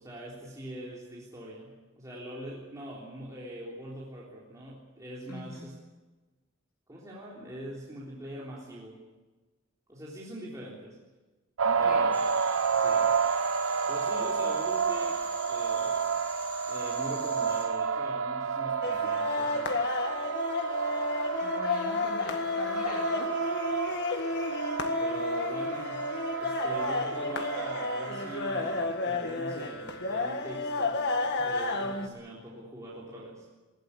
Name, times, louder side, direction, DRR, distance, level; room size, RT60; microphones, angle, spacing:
voice 1, 0.0-5.8 6.9-9.0 9.9-11.0 11.8-12.2 12.8-13.1 13.9-16.1 16.7-19.7 25.0-26.1 26.4-33.5, right 1 dB, 15° right, -6 dB, 3.8 m, -43 dB
voice 2, 5.3-5.7 11.6-12.1 21.4-23.3, left 2 dB, 90° left, 0 dB, 3.1 m, -41 dB
sound 1, 11.6-28.8, right 6 dB, 75° right, 0.9 m, -30 dB
sound 2, 12.1-17.6, equal, 10° left, 5.6 m, -45 dB
sound 3, 18.8-32.1, left 3 dB, 55° left, 1.8 m, -31 dB
20.5 x 16.0 x 9.8 m, 1.2 s
head